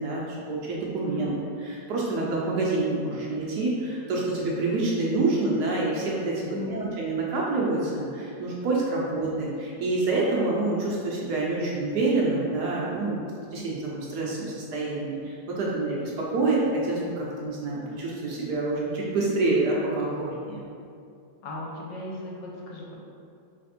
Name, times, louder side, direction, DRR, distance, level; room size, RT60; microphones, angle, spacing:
voice 1, 0.0-1.3 1.6-13.2 13.5-20.6, right 2 dB, 70° right, -4 dB, 1.1 m, -27 dB
voice 2, 6.5-6.9 9.0-9.3 21.4-22.9, left 1 dB, 75° left, -2 dB, 1.3 m, -37 dB
3.4 x 3.2 x 4.2 m, 2.4 s
omnidirectional pair, 2.1 m